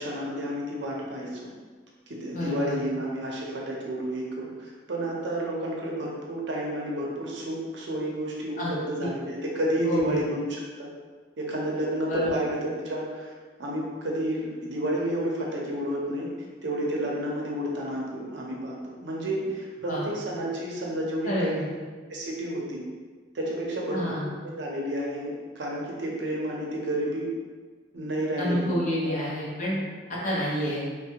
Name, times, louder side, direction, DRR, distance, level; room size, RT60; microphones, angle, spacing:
voice 1, 0.0-1.4 2.1-10.9 11.4-13.3 13.6-16.3 16.6-21.6 22.1-22.8 23.3-24.2 24.4-25.3 25.6-27.3 27.9-29.1 30.2-30.3, right 1 dB, 70° right, -3 dB, 0.6 m, -31 dB
voice 2, 2.3-2.8 8.6-8.8 9.8-10.2 12.1-12.3 19.9-20.1 21.2-21.7 23.9-24.3 28.4-29.8 30.1-30.8, equal, 45° left, -6 dB, 0.8 m, -28 dB
3.2 x 2.2 x 2.8 m, 1.5 s
head